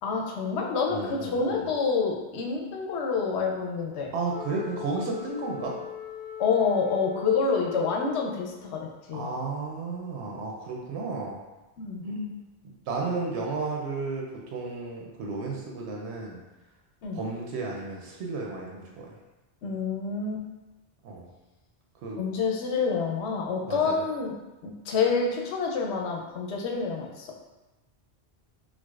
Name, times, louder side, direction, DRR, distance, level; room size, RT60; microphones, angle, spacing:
voice 1, 0.0-4.1 6.4-9.3 11.8-12.0 17.0-17.2 19.6-20.4 22.2-24.3 24.6-27.3, left 5 dB, 85° left, 1 dB, 0.9 m, -28 dB
voice 2, 0.9-1.7 4.1-5.8 9.1-11.4 12.0-12.3 12.9-16.4 17.1-19.1 21.0-21.3 22.0-22.2 23.7-24.0, right 3 dB, 85° right, -1 dB, 0.9 m, -33 dB
Wind instrument woodwind instrument, 4.3-8.7, left 9 dB, 10° left, 0.7 m, -40 dB
4.6 x 2.1 x 2.4 m, 1.1 s
omnidirectional pair, 1.1 m